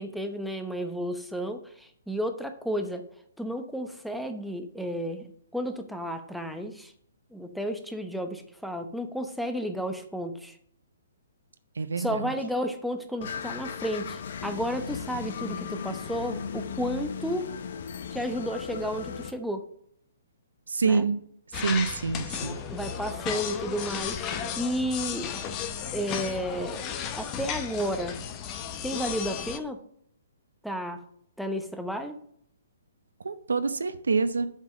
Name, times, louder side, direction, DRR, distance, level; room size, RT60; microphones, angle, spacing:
voice 1, 0.0-3.0 3.4-5.3 5.5-6.9 7.3-10.6 12.0-17.5 18.1-19.7 20.8-21.0 22.7-25.4 25.9-26.8 27.1-28.2 28.8-29.8 30.6-31.0 31.4-32.2, equal, ahead, 6 dB, 0.9 m, -32 dB
voice 2, 11.8-12.3 20.7-21.2 21.5-22.6 33.2-34.5, right 4 dB, 80° right, 11 dB, 0.7 m, -26 dB
sound 1, 13.2-19.3, left 6 dB, 55° left, 0.9 m, -36 dB
sound 2, 21.5-29.6, left 8 dB, 30° left, 0.9 m, -34 dB
7.3 x 5.5 x 6.3 m, 0.67 s
hypercardioid pair, 135°, 0 cm